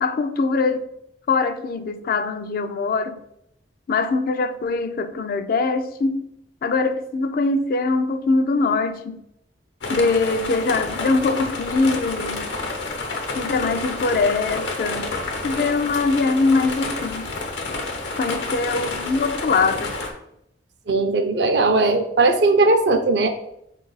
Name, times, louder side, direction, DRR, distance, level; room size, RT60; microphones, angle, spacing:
voice 1, 0.0-0.9 1.3-3.2 3.9-6.3 6.6-9.2 9.9-12.5 13.3-15.1 15.4-17.3 18.2-19.9, left 3 dB, 50° left, 0.3 m, -22 dB
sound 1, 9.8-20.1, left 3 dB, 85° left, 0.9 m, -29 dB
voice 2, 20.9-23.3, right 3 dB, 65° right, 0.5 m, -18 dB
4.6 x 2.4 x 3.9 m
head